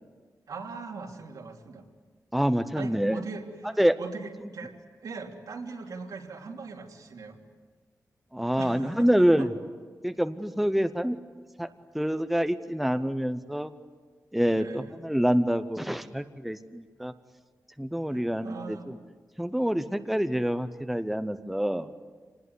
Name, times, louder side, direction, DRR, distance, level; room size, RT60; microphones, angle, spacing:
voice 1, 0.5-1.9 2.7-4.8 5.0-7.4 8.6-9.5 14.5-14.9 18.1-18.9, right 4 dB, 80° right, 1 dB, 3.1 m, -40 dB
voice 2, 2.3-3.2 3.8-4.0 8.3-9.5 10.0-11.2 11.6-11.7 11.9-13.7 14.3-17.1 17.8-19.0 19.4-21.9, equal, ahead, 9 dB, 0.8 m, -26 dB
26.5 x 19.5 x 9.6 m, 1.5 s
wide cardioid pair, 170°, 6 cm